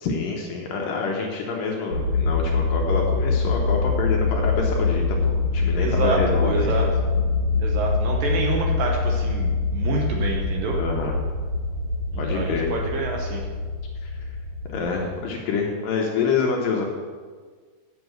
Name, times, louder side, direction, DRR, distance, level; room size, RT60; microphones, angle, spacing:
voice 1, 0.0-6.9 10.7-11.2 12.2-12.7 14.0-14.1 14.7-16.9, left 5 dB, 70° left, 0 dB, 2.3 m, -27 dB
sound 1, 1.9-15.1, left 4 dB, 25° right, 2.5 m, -24 dB
voice 2, 5.8-6.9 7.6-10.8 12.1-13.4, right 4 dB, 70° right, 0 dB, 2.3 m, -27 dB
8.0 x 6.9 x 7.7 m, 1.6 s
omnidirectional pair, 4.8 m